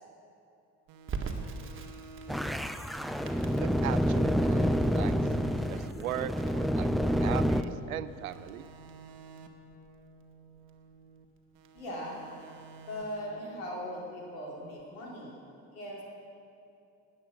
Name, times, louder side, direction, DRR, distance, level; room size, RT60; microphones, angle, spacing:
sound 1, 0.9-4.1 4.4-7.7 8.1-11.3 11.5-14.8, right 4 dB, 60° right, 1.3 m, -52 dB
Crackle, 1.1-11.8, right 4 dB, 30° right, 1.7 m, -44 dB
sound 2, 2.3-7.6, equal, ahead, 0.5 m, -28 dB
voice 1, 3.6-5.2 5.7-8.7, right 12 dB, 75° right, 14 dB, 0.6 m, -38 dB
voice 2, 11.7-12.2 12.8-15.4 15.7-16.0, equal, 70° left, -3 dB, 3.5 m, -39 dB
19.5 x 9.5 x 6.4 m, 2.6 s
figure-of-eight pair, 55°, 43 cm